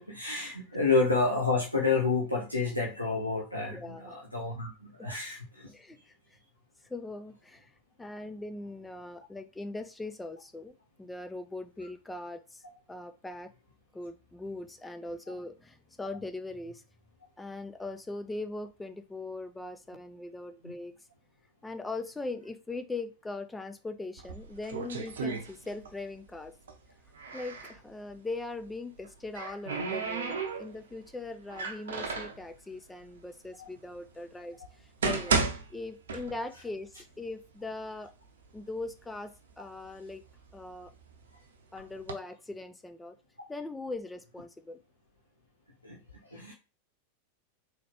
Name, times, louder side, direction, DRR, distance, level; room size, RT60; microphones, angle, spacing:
voice 1, 0.0-5.7 15.3-15.4 20.6-20.7 33.6-33.7 45.8-46.0 46.3-46.5, left 4 dB, 90° left, -3 dB, 0.8 m, -29 dB
voice 2, 3.7-4.1 5.0-5.1 5.7-6.4 6.9-7.7 8.0-12.6 12.9-13.5 13.9-16.8 17.4-20.9 21.6-26.5 27.3-35.4 35.7-38.1 38.5-40.2 40.5-40.9 41.7-43.2 43.5-44.8, left 2 dB, 10° left, 8 dB, 0.5 m, -40 dB
sound 1, 24.2-26.1 26.3-27.8 28.9-30.9 31.5-32.4 33.2-33.3 34.0-34.1 34.7-36.7 37.0-37.1 37.8-37.9 38.3-38.9 39.5-41.1 41.8-42.1, right 4 dB, 65° right, 0.7 m, -34 dB
3.8 x 3.2 x 3.4 m, 0.30 s
figure-of-eight pair, 90°, 0 cm